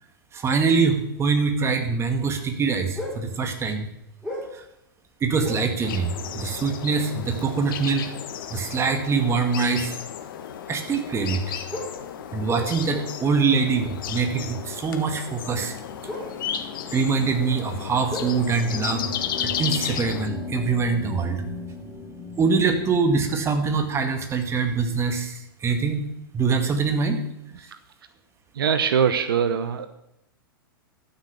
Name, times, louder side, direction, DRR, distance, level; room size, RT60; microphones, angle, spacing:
voice 1, 0.3-3.9 4.5-4.6 5.2-8.1 8.5-10.0 10.7-11.4 12.3-15.7 16.9-19.1 19.4-21.4 22.4-27.2, right 5 dB, 20° right, 6 dB, 2.1 m, -24 dB
sound 1, 2.9-3.4 3.9-4.7 5.4-5.8 6.9-7.0 7.6-7.8 9.6-9.7 11.7-13.3 13.6-13.7 16.0-17.3 17.6-19.9 20.2-20.4, left 1 dB, 5° right, 4.7 m, -35 dB
sound 2, 5.8-20.3, left 9 dB, 65° left, 1.4 m, -34 dB
sound 3, 12.0-23.9, left 3 dB, 20° left, 2.1 m, -40 dB
voice 2, 28.5-29.9, right 7 dB, 75° right, 11 dB, 1.0 m, -22 dB
13.0 x 6.8 x 8.2 m, 0.82 s
hypercardioid pair, 105°, 12 cm